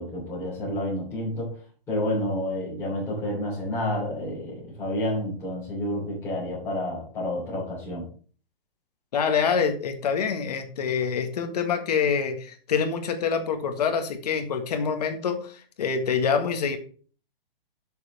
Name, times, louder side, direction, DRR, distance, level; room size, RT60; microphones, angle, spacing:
voice 1, 0.0-1.5 1.9-8.1, left 1 dB, 10° left, -11 dB, 3.5 m, -29 dB
voice 2, 9.1-16.8, left 6 dB, 45° left, 7 dB, 1.6 m, -26 dB
12.0 x 6.9 x 3.5 m, 0.42 s
hypercardioid pair, 170°, 29 cm